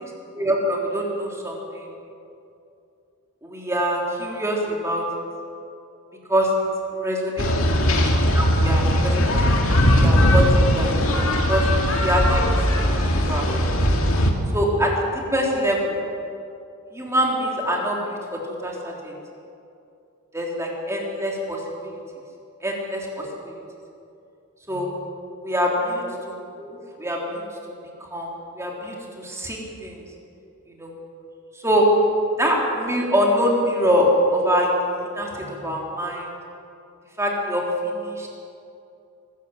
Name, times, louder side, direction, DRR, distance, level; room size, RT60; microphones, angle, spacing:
voice 1, 0.3-1.9 3.4-5.0 6.3-6.5 6.9-7.5 8.1-9.4 9.7-10.9 11.5-11.6 12.0-13.7 14.5-14.9 15.3-16.0 16.9-19.1 20.3-21.6 22.6-23.5 24.7-24.9 25.4-26.0 26.6-27.4 28.1-28.3 28.6-30.0 30.8-30.9 31.6-31.9 32.4-34.7 35.1-36.3 37.2-38.3, equal, 15° right, -1 dB, 3.6 m, -24 dB
sound 1, 7.4-14.3, equal, 70° left, 2.5 m, -19 dB
21.5 x 14.0 x 9.0 m, 2.7 s
head